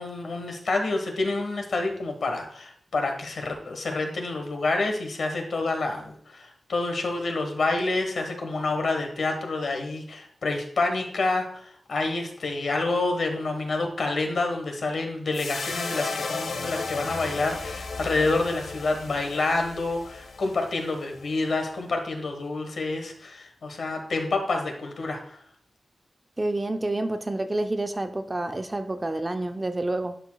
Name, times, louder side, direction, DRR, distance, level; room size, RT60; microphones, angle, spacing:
voice 1, 0.0-25.4, left 3 dB, 65° left, 4 dB, 1.2 m, -28 dB
sound 1, 15.3-21.7, left 4 dB, 90° left, 0.8 m, -35 dB
voice 2, 26.4-30.2, right 2 dB, 20° right, 8 dB, 0.4 m, -28 dB
11.5 x 4.9 x 2.2 m, 0.62 s
wide cardioid pair, 170°, 0 cm